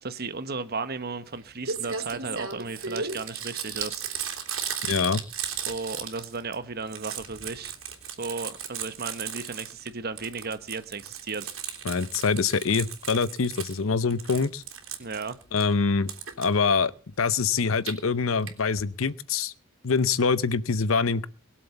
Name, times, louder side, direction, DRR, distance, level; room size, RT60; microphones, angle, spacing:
voice 1, 0.0-4.1 5.7-7.7 8.2-11.5 15.0-15.4, right 4 dB, 50° right, 1.2 m, -34 dB
Crumpling crinkling, 1.3-1.4 1.6-6.5 6.8-9.9 10.2-13.8 14.1-15.6 16.1-16.5 17.6-17.9 18.5-18.6 18.8-18.9 19.1-19.2, right 7 dB, 85° right, 3.3 m, -35 dB
voice 2, 4.8-5.2 11.8-14.6 15.5-16.1 16.4-16.9 17.2-19.5 19.8-21.3, left 5 dB, 80° left, 0.7 m, -24 dB
21.5 x 7.7 x 7.0 m
head